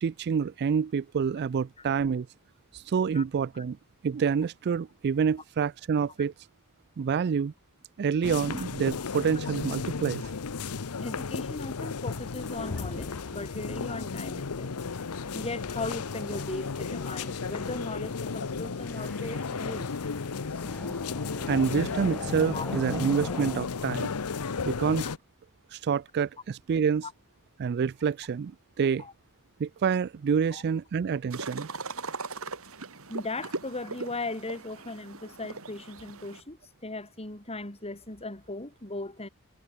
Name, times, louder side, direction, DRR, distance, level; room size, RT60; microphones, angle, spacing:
voice 1, 0.0-2.3 2.7-3.8 4.0-6.3 7.0-7.5 8.0-10.2 21.5-24.1 24.6-25.1 25.7-27.0 27.6-28.5 28.8-29.0 29.6-31.7, right 6 dB, 50° right, 0.3 m, -27 dB
sound 1, 8.2-25.2, left 4 dB, 80° left, 0.8 m, -34 dB
voice 2, 11.0-14.7 15.3-19.9 22.5-22.7 27.0-27.1 29.0-29.1 30.5-30.6 33.1-39.3, left 2 dB, 30° left, 3.6 m, -38 dB
sound 2, 12.5-23.7, left 1 dB, 5° left, 1.0 m, -45 dB
sound 3, 31.3-36.4, right 3 dB, 70° right, 3.9 m, -39 dB
head